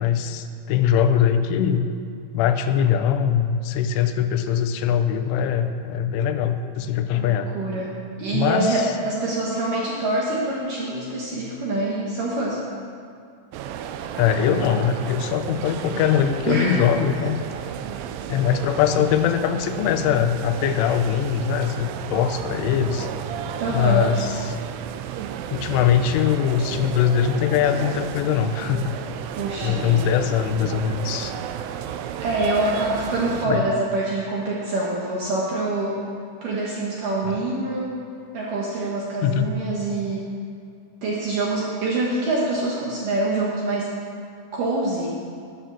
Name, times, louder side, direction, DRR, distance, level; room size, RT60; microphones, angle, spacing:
voice 1, 0.0-1.8 2.3-7.5 8.3-8.9 14.2-17.4 18.3-23.1 23.7-24.4 25.5-29.0 29.6-31.3 33.5-33.6 37.2-37.4 39.2-39.5, left 8 dB, 85° left, 7 dB, 3.2 m, -22 dB
voice 2, 7.1-12.6 16.5-16.8 23.6-24.1 29.4-30.1 32.2-36.0 36.4-37.9 38.3-40.3 41.0-43.9 44.5-45.2, right 2 dB, 65° right, -4 dB, 2.1 m, -25 dB
sound 1, 13.5-33.5, right 9 dB, 90° right, 3.1 m, -33 dB
11.5 x 9.1 x 6.9 m, 2.4 s
omnidirectional pair, 5.5 m